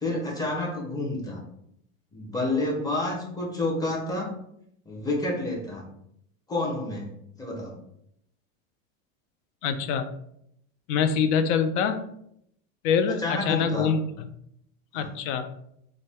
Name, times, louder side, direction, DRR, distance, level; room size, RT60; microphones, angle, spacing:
voice 1, 0.0-1.4 2.1-4.3 4.9-5.9 6.5-7.1 7.4-7.7 13.1-13.9 15.0-15.1, left 2 dB, 10° left, -2 dB, 0.7 m, -29 dB
voice 2, 9.6-10.1 10.9-12.1 12.8-14.3 14.9-15.5, left 6 dB, 60° left, 10 dB, 0.5 m, -25 dB
2.5 x 2.2 x 3.4 m, 0.74 s
supercardioid pair, 115°, 41 cm